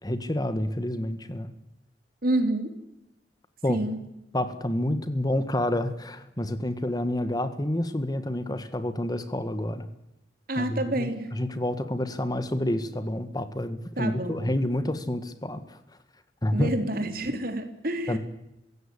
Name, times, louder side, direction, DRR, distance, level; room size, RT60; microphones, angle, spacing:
voice 1, 0.0-1.5 3.6-3.8 4.3-9.9 10.6-15.8 16.4-16.7 18.1-18.2, left 1 dB, 20° left, 11 dB, 1.6 m, -28 dB
voice 2, 2.2-2.7 3.7-4.0 10.5-11.3 14.0-14.5 16.5-18.2, right 1 dB, 55° right, 7 dB, 3.4 m, -28 dB
23.5 x 17.0 x 9.9 m, 0.91 s
head